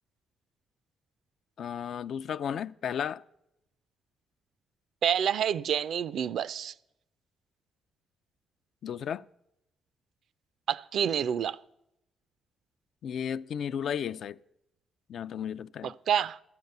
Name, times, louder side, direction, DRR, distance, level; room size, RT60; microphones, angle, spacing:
voice 1, 1.6-3.2 8.8-9.2 13.0-14.4 15.1-15.9, left 8 dB, 65° left, 0.3 m, -34 dB
voice 2, 5.0-6.7 10.7-11.6 15.8-16.4, right 9 dB, 65° right, 0.4 m, -28 dB
11.5 x 8.3 x 6.6 m
cardioid pair, 90°, 0 cm